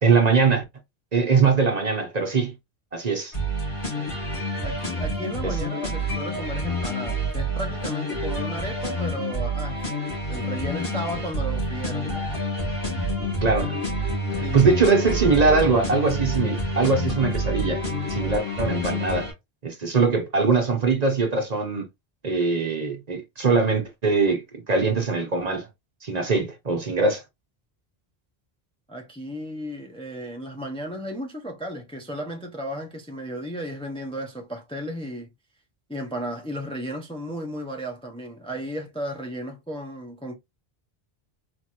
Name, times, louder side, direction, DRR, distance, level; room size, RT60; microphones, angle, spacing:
voice 1, 0.0-0.6 1.1-2.5 2.9-3.3 5.4-5.6 13.4-13.8 14.3-19.3 19.6-21.9 22.2-25.7 26.0-27.2, right 4 dB, 45° right, 0.9 m, -22 dB
sound 1, 3.3-19.3, equal, 60° left, 2.2 m, -28 dB
voice 2, 4.6-9.8 10.3-12.3 14.4-14.8 28.9-35.3 35.9-40.4, equal, 5° left, 0.6 m, -34 dB
4.3 x 3.0 x 2.4 m
omnidirectional pair, 1.1 m